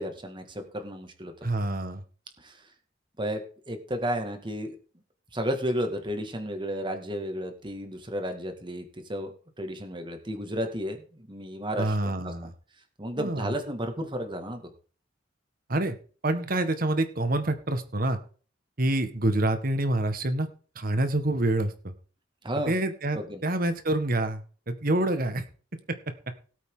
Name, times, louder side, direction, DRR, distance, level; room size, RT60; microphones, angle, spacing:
voice 1, 0.0-1.3 2.4-2.6 3.2-4.8 5.3-12.3 13.0-14.7 22.4-22.8 23.1-23.4, equal, 25° right, 6 dB, 2.1 m, -33 dB
voice 2, 1.4-2.0 11.8-12.5 13.2-13.5 15.7-15.9 16.2-18.2 18.8-20.5 20.7-21.9 22.7-25.4, right 1 dB, 50° right, 9 dB, 1.7 m, -27 dB
18.0 x 8.2 x 3.9 m, 0.40 s
head